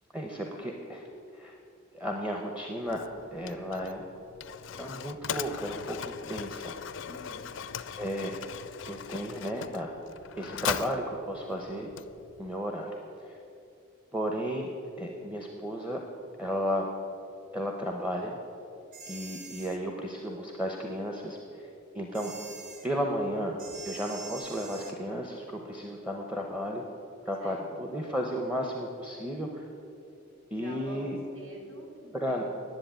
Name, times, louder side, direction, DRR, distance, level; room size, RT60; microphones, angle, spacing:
voice 1, 0.1-1.0 1.3-1.5 1.9-3.0 3.3-4.1 4.8-6.7 7.9-8.5 8.9-9.9 10.4-11.9 12.4-13.0 13.2-13.4 14.1-14.7 15.0-16.0 16.4-16.9 17.5-18.4 19.1-21.7 21.9-22.3 22.8-23.6 23.8-26.8 27.2-29.7 30.5-31.2 32.1-32.6, equal, 5° right, 1 dB, 0.7 m, -33 dB
Mechanisms, 2.9-12.6, left 7 dB, 60° left, 0.4 m, -39 dB
voice 2, 7.0-7.6 27.4-27.7 30.5-32.6, right 1 dB, 70° right, -2 dB, 3.1 m, -46 dB
sound 1, 18.9-19.8 22.1-22.9 23.6-25.0, right 4 dB, 35° right, 1.0 m, -44 dB
10.5 x 7.7 x 8.9 m, 2.7 s
head